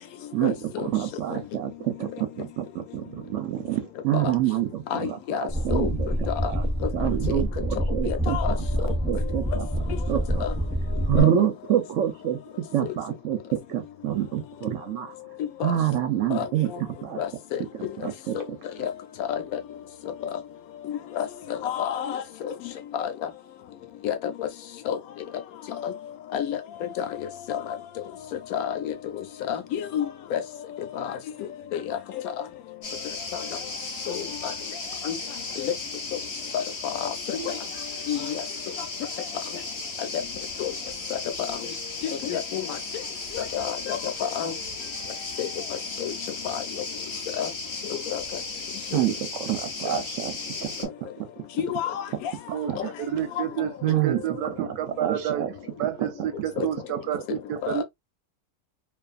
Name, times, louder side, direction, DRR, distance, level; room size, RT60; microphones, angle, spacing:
voice 1, 0.3-6.7 6.9-10.5 11.1-12.4 12.7-15.1 15.6-17.2 17.7-18.9 48.9-51.3 51.7-51.8 52.5-52.8 53.8-55.5 55.8-56.7 57.1-57.6, right 11 dB, 65° right, 0.9 m, -28 dB
voice 2, 4.9-5.9 6.3-6.4 8.1-8.5 10.4-10.5 11.2-11.3 16.3-16.5 17.2-17.6 18.3-18.4 18.8-18.9 19.3-19.4 21.2-21.3 21.6-22.5 23.0-23.1 24.0-24.5 24.9-25.0 25.8-25.9 26.3-27.0 27.5-27.6 28.5-28.9 29.5-30.4 31.0-31.1 31.7-32.0 33.3-33.4 34.1-34.5 35.0-35.1 35.6-35.7 36.5-36.9 37.3-37.6 38.1-38.4 40.6-40.7 42.2-42.6 43.3-44.5 45.4-45.5 46.0-46.1 46.4-46.6 47.4-47.5 48.1-48.2 51.6-52.3 52.8-52.9 56.6-56.7 57.6-57.8, left 9 dB, 75° left, 1.0 m, -29 dB
sound 1, 5.5-11.2, equal, 10° right, 0.7 m, -27 dB
sound 2, 32.8-50.9, left 3 dB, 50° left, 0.8 m, -35 dB
voice 3, 52.5-55.4 55.8-57.8, right 10 dB, 90° right, 1.1 m, -30 dB
2.5 x 2.4 x 2.3 m
omnidirectional pair, 1.6 m